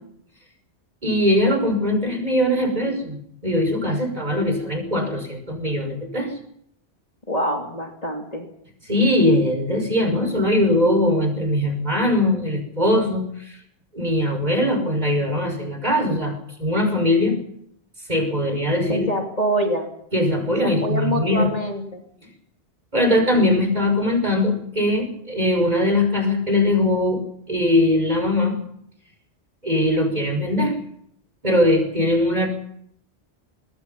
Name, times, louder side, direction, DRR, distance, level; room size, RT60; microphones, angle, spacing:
voice 1, 1.0-6.3 8.9-13.6 13.9-17.4 18.1-19.1 20.1-21.5 22.9-28.6 29.6-30.8 31.4-32.5, left 1 dB, 35° right, 4 dB, 6.0 m, -21 dB
voice 2, 7.3-8.5 18.9-19.9 20.6-22.0, equal, 35° left, 1 dB, 3.1 m, -25 dB
24.5 x 21.0 x 5.7 m, 0.70 s
omnidirectional pair, 1.2 m